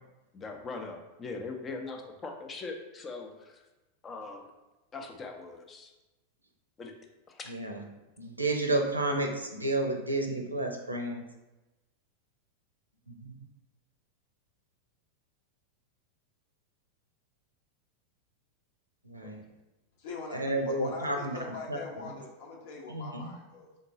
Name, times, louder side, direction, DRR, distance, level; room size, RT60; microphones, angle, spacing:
voice 1, 0.3-3.6 4.0-4.5 4.9-5.9 6.8-6.9 7.3-7.5 19.2-19.4, left 3 dB, 20° left, 3 dB, 0.6 m, -41 dB
voice 2, 7.5-7.8 8.2-11.2 13.1-13.3 19.0-19.4 20.3-21.4 21.7-21.8 22.9-23.3, right 2 dB, 85° right, 2 dB, 0.5 m, -31 dB
voice 3, 20.0-23.7, left 3 dB, 50° left, 0 dB, 0.8 m, -42 dB
3.7 x 3.7 x 2.7 m, 1.1 s
figure-of-eight pair, 90°, 0 cm